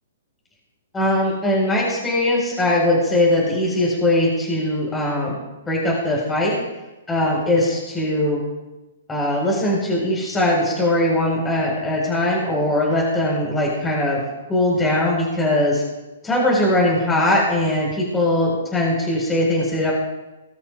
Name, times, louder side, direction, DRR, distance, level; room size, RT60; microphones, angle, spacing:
voice 1, 0.9-5.4 5.7-6.5 7.1-8.4 9.1-14.2 14.5-15.8 16.2-19.9, left 1 dB, 10° left, -4 dB, 4.6 m, -20 dB
20.5 x 12.5 x 2.5 m, 1.1 s
figure-of-eight pair, 120°, 0 cm